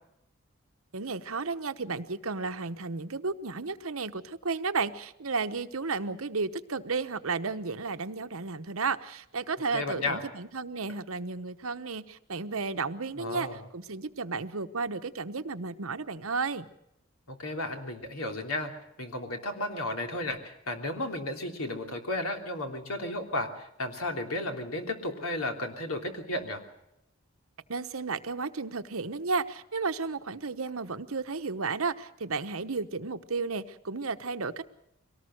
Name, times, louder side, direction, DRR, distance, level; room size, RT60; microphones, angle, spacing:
voice 1, 0.9-13.5 13.7-16.7 27.7-34.6, right 4 dB, 85° right, 10 dB, 1.1 m, -33 dB
voice 2, 9.7-10.2 13.1-13.6 17.3-18.7 19.0-26.6, left 1 dB, 90° left, 4 dB, 3.2 m, -33 dB
23.5 x 18.5 x 6.5 m, 0.82 s
head